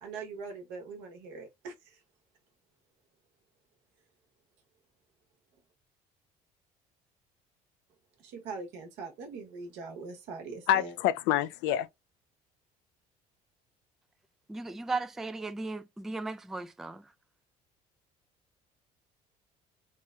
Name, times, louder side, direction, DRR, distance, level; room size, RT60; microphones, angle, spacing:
voice 1, 0.0-1.7 8.2-10.9, right 4 dB, 70° right, 1.1 m, -42 dB
voice 2, 10.7-11.9, left 12 dB, 65° left, 0.4 m, -27 dB
voice 3, 14.5-17.0, right 3 dB, ahead, 0.3 m, -36 dB
3.0 x 3.0 x 2.3 m
hypercardioid pair, 60°, 19 cm